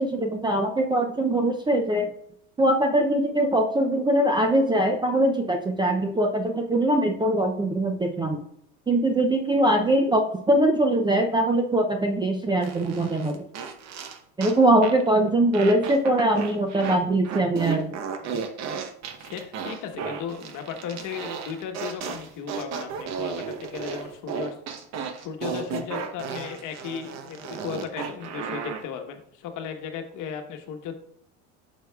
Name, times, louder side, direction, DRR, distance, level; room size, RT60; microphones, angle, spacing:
voice 1, 0.0-2.1 2.6-8.4 8.9-13.4 14.4-17.9, right 1 dB, 10° right, 3 dB, 0.4 m, -22 dB
sound 1, 12.6-14.6 14.8-15.1 15.5-17.0 17.2-28.8, right 6 dB, 45° right, 0.9 m, -34 dB
voice 2, 19.2-24.6 25.2-30.9, left 7 dB, 55° left, 5 dB, 1.2 m, -36 dB
9.2 x 6.3 x 2.3 m, 0.70 s
supercardioid pair, 120°, 38 cm